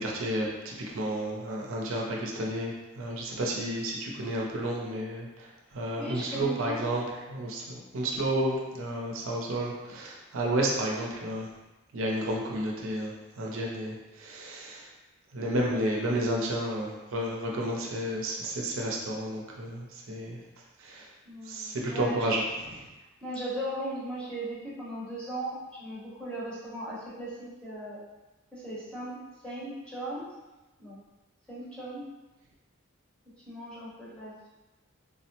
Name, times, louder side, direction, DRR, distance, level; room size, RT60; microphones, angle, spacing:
voice 1, 0.0-5.5 5.7-11.5 11.9-14.9 15.3-20.4 20.8-21.1 21.5-22.4 22.7-22.8, right 1 dB, 65° right, -2 dB, 0.5 m, -31 dB
voice 2, 6.0-6.9 21.3-22.4 23.2-28.0 28.5-30.2 30.8-31.0 31.5-32.0 33.5-34.5, right 1 dB, 5° left, -9 dB, 0.8 m, -37 dB
3.6 x 2.0 x 2.8 m, 1.1 s
head